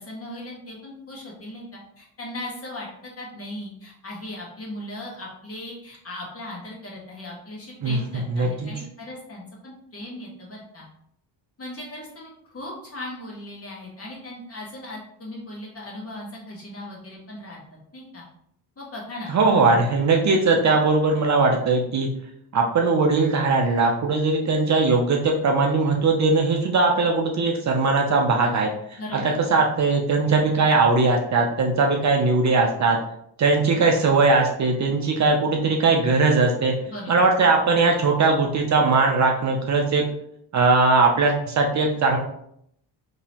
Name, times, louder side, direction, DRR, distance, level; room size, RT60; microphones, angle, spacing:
voice 1, 0.0-1.6 2.0-10.9 11.6-18.2 18.8-19.3 29.0-29.4 36.9-37.2, left 1 dB, 30° left, -3 dB, 1.3 m, -38 dB
voice 2, 8.3-8.7 19.3-22.1 22.5-33.0 33.4-36.7 37.1-40.0 40.5-42.2, right 3 dB, 40° right, 1 dB, 0.5 m, -20 dB
3.8 x 2.9 x 2.9 m, 0.72 s
cardioid pair, 110°, 43 cm